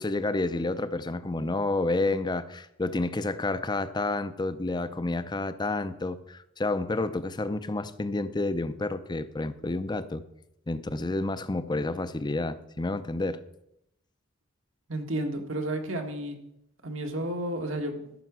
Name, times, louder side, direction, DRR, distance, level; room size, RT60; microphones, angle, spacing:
voice 1, 0.0-10.2 10.7-13.4, left 2 dB, 20° left, 13 dB, 0.5 m, -30 dB
voice 2, 14.9-16.4 16.8-18.1, right 1 dB, 75° right, 4 dB, 1.6 m, -32 dB
13.5 x 5.8 x 6.1 m, 0.81 s
head